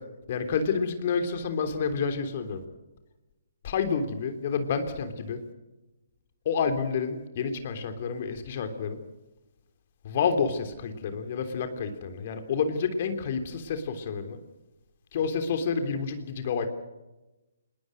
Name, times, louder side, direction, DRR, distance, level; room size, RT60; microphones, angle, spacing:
voice 1, 0.3-2.6 3.6-5.4 6.4-9.0 10.0-14.4 15.1-16.7, left 5 dB, 45° left, 7 dB, 3.3 m, -29 dB
27.0 x 21.0 x 6.5 m, 1.0 s
figure-of-eight pair, 135°, 0 cm